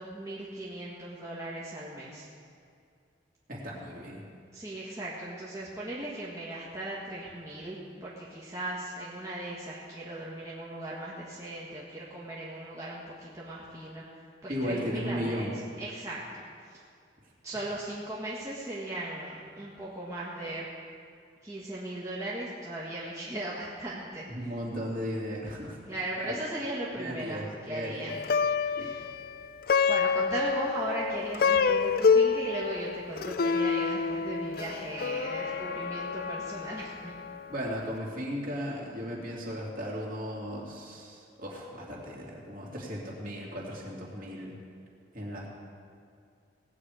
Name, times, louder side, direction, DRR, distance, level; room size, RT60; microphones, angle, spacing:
voice 1, 0.0-2.3 4.5-14.0 14.4-15.5 15.8-16.5 17.4-20.7 21.4-24.5 25.9-28.2 28.8-29.1 29.9-37.1, right 1 dB, 15° right, -7 dB, 1.6 m, -37 dB
voice 2, 3.5-4.2 14.5-15.5 24.3-25.8 26.3-26.4 26.9-28.1 28.8-28.9 37.5-44.5 45.1-45.5, equal, 45° right, -3 dB, 2.7 m, -36 dB
Plucked string instrument, 28.1-37.5, left 5 dB, 50° left, 0.4 m, -28 dB
18.0 x 8.6 x 5.0 m, 2.4 s
head